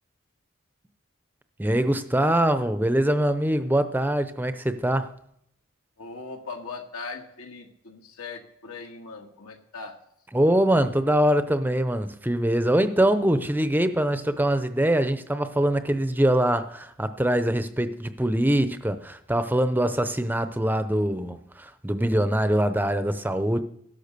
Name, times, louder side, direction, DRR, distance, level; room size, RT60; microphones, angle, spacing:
voice 1, 1.6-5.1 10.3-23.6, right 1 dB, 10° right, 0.6 m, -23 dB
voice 2, 6.0-10.0, left 4 dB, 85° left, 1.9 m, -39 dB
15.5 x 12.0 x 6.7 m
head